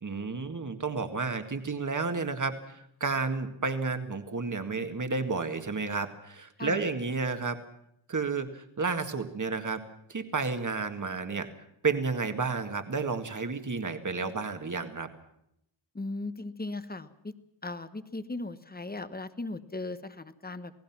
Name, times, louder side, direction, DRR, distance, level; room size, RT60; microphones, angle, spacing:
voice 1, 0.0-7.6 8.1-9.8 10.1-11.5 11.8-15.1, right 4 dB, 40° right, 7 dB, 1.9 m, -31 dB
voice 2, 15.9-17.3 17.6-20.8, left 2 dB, 20° left, 12 dB, 1.0 m, -37 dB
28.0 x 18.5 x 6.0 m, 0.76 s
wide cardioid pair, 155°, 46 cm